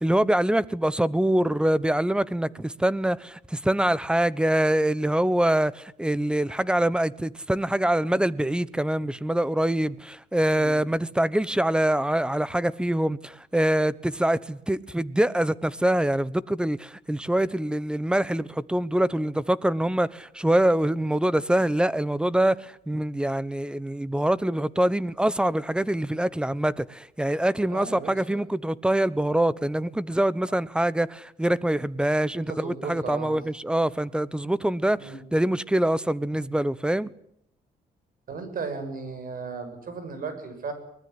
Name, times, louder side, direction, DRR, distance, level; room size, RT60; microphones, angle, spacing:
voice 1, 0.0-37.1, right 1 dB, 5° right, 1.0 m, -24 dB
voice 2, 27.7-28.4 32.3-33.4 35.0-35.2 38.3-40.7, right 4 dB, 60° right, 7.5 m, -36 dB
24.0 x 20.0 x 9.6 m
cardioid pair, 115°, 16 cm